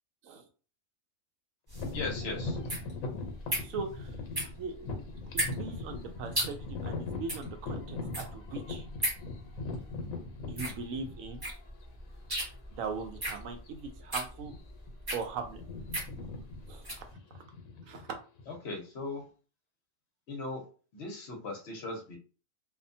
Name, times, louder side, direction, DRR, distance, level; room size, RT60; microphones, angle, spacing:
sound 1, 1.7-11.5 12.2-12.3 12.9-13.2 13.4-13.7 14.3-14.9 15.1-18.6, left 3 dB, 85° left, 1.1 m, -40 dB
sound 2, 1.7-17.1, right 1 dB, 20° right, 0.8 m, -37 dB
voice 1, 1.9-2.6 18.6-19.2 20.3-20.6 20.9-22.2, left 3 dB, 60° left, 1 dB, 1.1 m, -38 dB
voice 2, 3.6-5.1 5.3-8.9 10.5-11.4 12.7-14.5 15.1-15.6 16.7-16.9 17.9-18.2, right 4 dB, 75° right, 5 dB, 1.0 m, -40 dB
2.7 x 2.2 x 2.6 m, 0.37 s
omnidirectional pair, 1.4 m